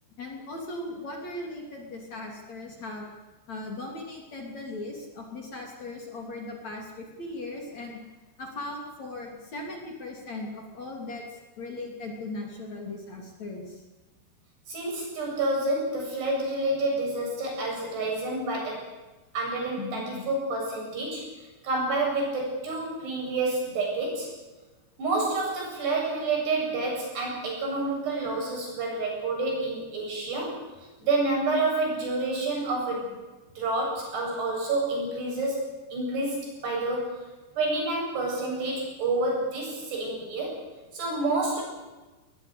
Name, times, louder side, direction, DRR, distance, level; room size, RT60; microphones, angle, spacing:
voice 1, 0.2-3.1 3.5-8.0 8.4-13.8 19.8-20.3, left 2 dB, 40° left, 1 dB, 4.0 m, -38 dB
voice 2, 14.7-18.9 19.3-21.2 21.6-24.3 25.0-30.6 31.0-33.1 33.6-36.4 36.6-37.1 37.6-40.5 40.9-41.6, right 2 dB, 65° right, -1 dB, 9.9 m, -28 dB
21.0 x 20.5 x 8.3 m, 1.2 s
omnidirectional pair, 5.1 m